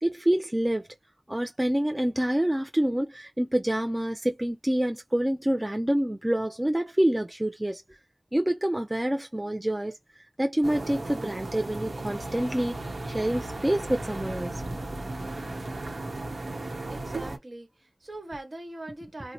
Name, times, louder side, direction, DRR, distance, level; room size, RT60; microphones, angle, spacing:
voice 1, 0.0-0.9 1.3-8.0 8.3-10.0 10.4-12.8 13.1-14.6, right 1 dB, 20° right, 0.4 m, -27 dB
sound 1, 10.6-17.4, right 2 dB, 75° right, 0.9 m, -35 dB
voice 2, 16.8-19.3, right 2 dB, 55° right, 1.3 m, -41 dB
2.9 x 2.1 x 3.9 m
wide cardioid pair, 55°, 0 cm